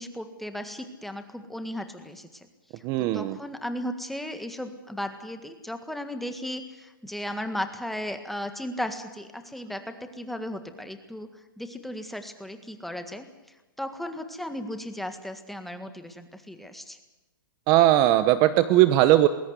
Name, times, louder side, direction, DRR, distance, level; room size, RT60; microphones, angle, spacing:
voice 1, 0.0-2.5 3.0-11.3 11.6-13.3 13.8-17.0, left 1 dB, ahead, 7 dB, 1.7 m, -35 dB
voice 2, 2.8-3.4 17.7-19.3, right 14 dB, 35° right, 13 dB, 0.9 m, -19 dB
20.5 x 19.0 x 8.2 m, 1.1 s
hypercardioid pair, 140°, 12 cm